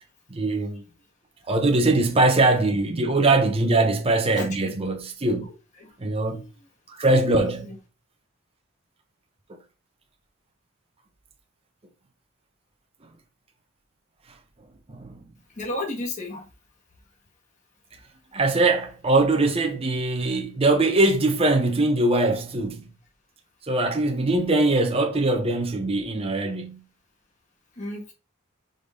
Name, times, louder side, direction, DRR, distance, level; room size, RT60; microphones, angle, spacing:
voice 1, 0.3-0.8 1.5-5.4 6.0-6.4 6.9-7.7 9.5-9.6 14.9-15.2 18.3-22.9 23.7-26.8, right 2 dB, 25° right, 0.8 m, -22 dB
voice 2, 4.3-4.7 5.2-5.3 5.8-5.9 6.3-6.5 7.6-7.8 15.6-16.5 27.8-28.1, left 2 dB, 35° left, 1.8 m, -33 dB
5.1 x 3.9 x 5.2 m
head